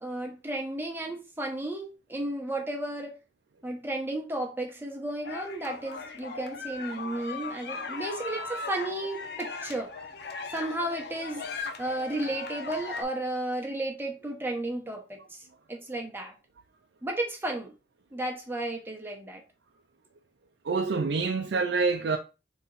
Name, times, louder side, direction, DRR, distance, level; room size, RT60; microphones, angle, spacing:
voice 1, 0.0-3.2 3.6-9.9 10.5-11.5 11.8-15.4 15.7-16.3 17.0-17.7 18.1-19.4, right 1 dB, 15° right, 1.0 m, -33 dB
sound 1, 5.2-13.0, left 4 dB, 65° left, 0.7 m, -38 dB
voice 2, 20.7-22.2, right 4 dB, 70° right, 0.4 m, -26 dB
3.9 x 3.0 x 4.0 m
head